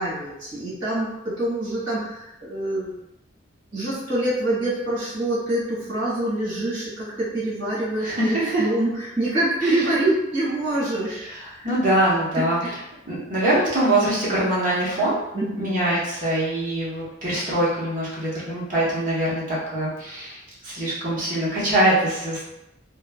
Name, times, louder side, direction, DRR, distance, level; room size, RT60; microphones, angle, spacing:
voice 1, 0.0-2.9 3.7-11.8 12.3-12.7 15.3-15.9, right 1 dB, 60° right, -10 dB, 1.5 m, -26 dB
voice 2, 8.0-8.7 9.6-9.9 11.3-11.4 11.6-12.6 13.1-15.2 15.5-22.5, right 1 dB, 45° right, -7 dB, 0.9 m, -23 dB
3.0 x 2.1 x 2.3 m, 0.88 s
head